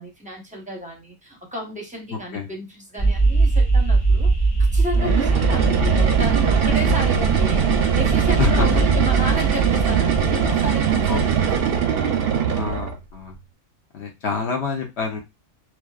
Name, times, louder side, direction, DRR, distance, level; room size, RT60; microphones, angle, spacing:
voice 1, 0.0-4.3 4.7-12.7, right 1 dB, 10° right, -1 dB, 0.6 m, -32 dB
voice 2, 2.1-2.5 4.9-5.2 8.4-8.8 11.1-11.6 12.5-13.4 13.9-15.2, left 5 dB, 65° left, 1 dB, 1.0 m, -27 dB
sound 1, 3.0-12.2, right 3 dB, 30° left, 1.0 m, -21 dB
sound 2, 4.9-13.0, right 8 dB, 65° right, 0.7 m, -21 dB
3.1 x 2.2 x 2.3 m, 0.22 s
omnidirectional pair, 1.2 m